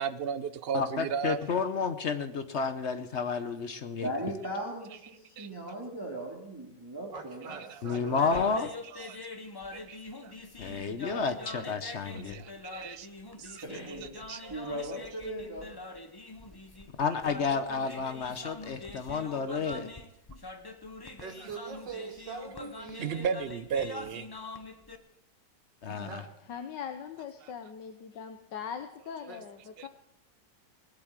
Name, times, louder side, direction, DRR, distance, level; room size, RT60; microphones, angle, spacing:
voice 1, 0.0-1.4 5.4-5.5 8.9-9.2 9.7-10.0 10.2-10.3 12.3-13.1 13.4-13.6 14.3-14.5 23.0-24.3 29.8-29.9, right 7 dB, 55° right, 12 dB, 0.7 m, -34 dB
voice 2, 0.7-4.1 7.8-8.7 10.6-12.4 17.0-19.9 25.8-26.2, left 5 dB, 50° left, 10 dB, 0.9 m, -31 dB
voice 3, 4.0-7.5 11.1-11.3 13.4-15.7 25.9-26.1, right 1 dB, 15° right, -2 dB, 2.4 m, -38 dB
voice 4, 7.1-8.6 21.2-23.3 26.1-26.3 29.3-29.4, right 5 dB, 85° right, 3 dB, 2.8 m, -43 dB
sound 1, 8.1-25.0, left 2 dB, 20° left, 0.7 m, -44 dB
voice 5, 26.5-29.9, left 7 dB, 80° left, 7 dB, 1.6 m, -41 dB
20.0 x 8.4 x 7.4 m, 0.81 s
omnidirectional pair, 1.9 m